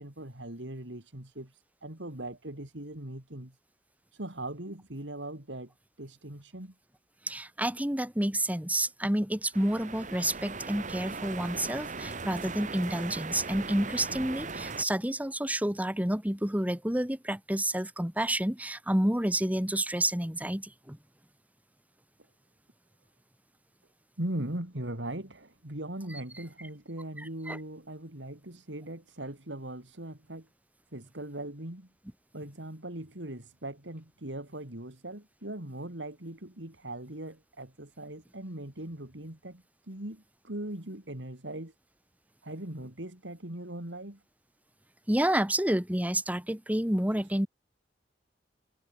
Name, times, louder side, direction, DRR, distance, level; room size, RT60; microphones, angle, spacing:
voice 1, 0.0-1.5 1.8-3.5 4.1-5.7 6.0-6.7 13.6-13.7 24.2-30.5 30.9-31.9 32.3-41.7 42.4-44.2, right 1 dB, 75° right, 3.9 m, -40 dB
voice 2, 7.3-21.0 27.5-27.6 45.1-47.5, right 1 dB, 10° right, 1.8 m, -29 dB
sound 1, 9.5-14.8, right 4 dB, 45° right, 2.2 m, -39 dB
head